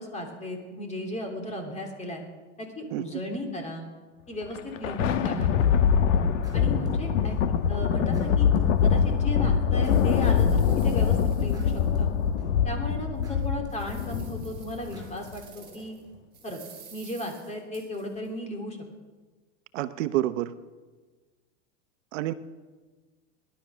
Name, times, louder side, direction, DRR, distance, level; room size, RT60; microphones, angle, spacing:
voice 1, 0.0-2.2 2.6-3.8 4.3-5.5 6.5-7.4 7.7-8.5 8.8-12.1 12.6-16.0 16.4-16.6 16.9-18.8, left 1 dB, 20° left, 3 dB, 3.0 m, -35 dB
Thunder, 4.4-15.2, left 7 dB, 90° left, 1.2 m, -24 dB
sound 1, 5.6-5.9 6.4-7.6 8.1-9.1 9.8-11.0 11.5-12.7 13.2-14.4 14.9-16.1, right 1 dB, 10° right, 6.1 m, -51 dB
sound 2, 8.8-8.9 9.4-12.3 12.7-12.8 13.3-16.0 16.3-18.3, right 7 dB, 25° right, 4.6 m, -52 dB
voice 2, 19.7-20.5 22.1-22.3, right 14 dB, 80° right, 12 dB, 0.9 m, -28 dB
18.5 x 11.5 x 6.2 m, 1.3 s
supercardioid pair, 135°, 37 cm